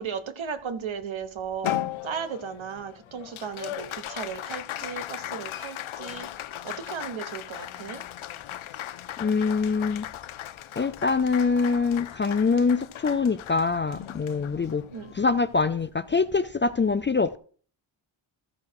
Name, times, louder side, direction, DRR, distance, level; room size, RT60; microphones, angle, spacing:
voice 1, 0.0-1.8 2.0-6.3 6.6-8.0 14.9-15.1, right 6 dB, 75° right, 1.2 m, -35 dB
Applause, 1.6-16.3, left 12 dB, 85° left, 0.6 m, -37 dB
voice 2, 9.2-10.0 10.8-14.8 15.2-17.4, left 4 dB, 25° left, 0.3 m, -24 dB
14.0 x 4.7 x 4.6 m
wide cardioid pair, 100°, 48 cm